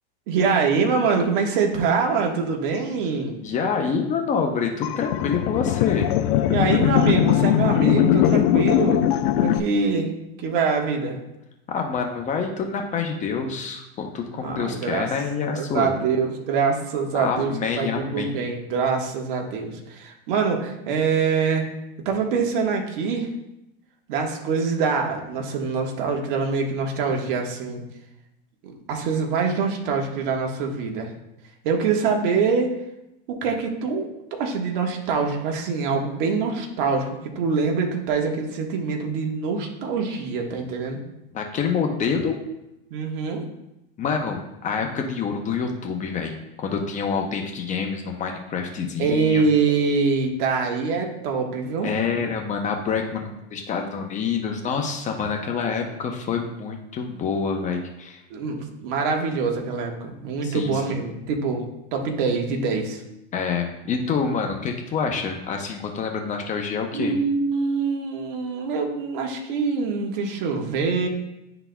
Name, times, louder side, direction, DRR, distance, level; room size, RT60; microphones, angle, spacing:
voice 1, 0.3-3.4 6.5-9.1 9.3-10.1 10.4-11.2 14.4-15.1 15.5-21.6 22.0-23.3 24.1-27.8 28.6-31.1 31.6-32.7 33.3-41.0 42.9-43.5 49.0-51.9 58.3-61.6 61.9-63.0 66.9-71.1, right 5 dB, 60° right, 2 dB, 1.4 m, -24 dB
voice 2, 3.4-6.1 11.7-15.9 17.1-18.4 41.3-42.4 44.0-49.4 51.8-58.2 60.4-61.0 63.3-67.1, left 5 dB, 25° left, 3 dB, 0.7 m, -27 dB
sound 1, 4.8-9.6, left 13 dB, 60° left, 0.5 m, -20 dB
11.0 x 3.9 x 2.3 m, 0.90 s
supercardioid pair, 130°, 29 cm